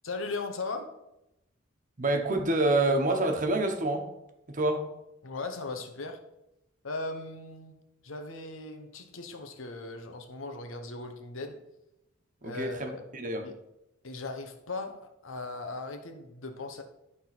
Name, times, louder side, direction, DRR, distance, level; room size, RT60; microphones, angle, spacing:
voice 1, 0.0-0.9 5.2-6.2 6.8-7.8 8.0-11.6 12.4-13.1 13.4-13.5 14.0-16.8, left 3 dB, 75° left, 1.1 m, -38 dB
voice 2, 2.0-4.1 4.5-4.9 12.4-13.4, right 2 dB, 40° right, 1.1 m, -27 dB
11.0 x 3.8 x 6.0 m
head